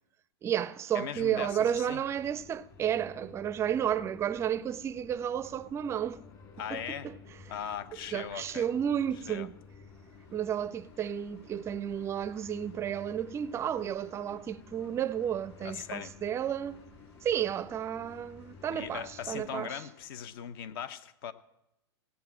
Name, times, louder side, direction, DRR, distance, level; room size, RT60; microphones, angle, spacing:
voice 1, 0.4-6.2 6.7-7.2 8.1-9.5 10.3-16.8 17.2-19.8, right 9 dB, 20° right, 0.5 m, -32 dB
voice 2, 0.9-2.0 6.6-7.1 7.5-8.7 9.3-9.5 15.6-16.1 18.7-21.3, left 9 dB, 55° left, 1.0 m, -39 dB
sound 1, 1.1-19.5, left 5 dB, 25° left, 2.2 m, -53 dB
sound 2, 9.9-20.3, left 3 dB, 70° left, 5.0 m, -64 dB
17.0 x 8.5 x 7.5 m
hypercardioid pair, 140°, 14 cm